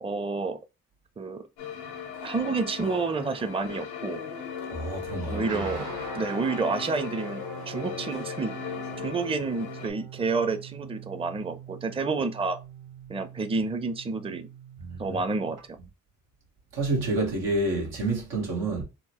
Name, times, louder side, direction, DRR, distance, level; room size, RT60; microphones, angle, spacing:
voice 1, 0.0-0.6 1.2-1.4 2.2-4.2 5.3-8.7 9.0-12.6 13.1-14.5 15.0-15.8, right 4 dB, 15° right, 0.5 m, -29 dB
sound 1, 1.6-9.9, left 7 dB, 90° left, 0.7 m, -37 dB
voice 2, 4.7-5.8 14.8-15.2 16.7-18.8, right 2 dB, 90° right, 1.1 m, -29 dB
sound 2, 5.5-15.6, right 7 dB, 55° right, 0.9 m, -43 dB
3.8 x 2.0 x 2.8 m
supercardioid pair, 45°, 37 cm